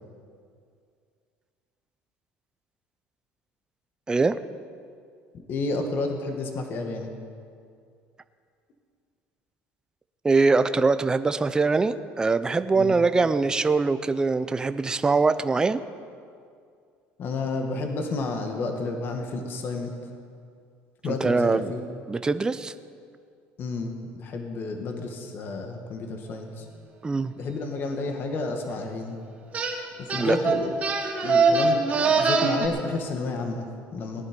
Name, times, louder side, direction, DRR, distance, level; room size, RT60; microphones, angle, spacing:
voice 1, 5.5-7.1 12.7-12.9 17.2-19.9 21.0-21.8 23.6-26.7 27.4-29.2 30.0-30.8 31.2-31.8 32.0-34.3, left 3 dB, 45° left, 4 dB, 1.8 m, -31 dB
voice 2, 10.2-15.8 21.0-21.7 22.1-22.7 27.0-27.3 30.2-30.4, right 4 dB, 15° right, 11 dB, 0.5 m, -23 dB
sound 1, 29.5-29.8 30.1-32.7, right 4 dB, 30° right, 2.0 m, -22 dB
18.5 x 11.0 x 5.3 m, 2.3 s
cardioid pair, 125°, 5 cm